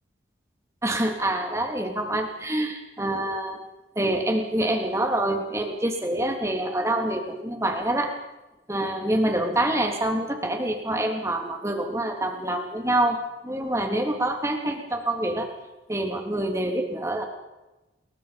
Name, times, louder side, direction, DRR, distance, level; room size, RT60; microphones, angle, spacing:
voice 1, 0.8-3.6 3.9-8.1 8.7-15.5 15.9-17.3, right 1 dB, 15° right, 3 dB, 3.3 m, -26 dB
29.0 x 23.0 x 5.3 m, 1.0 s
head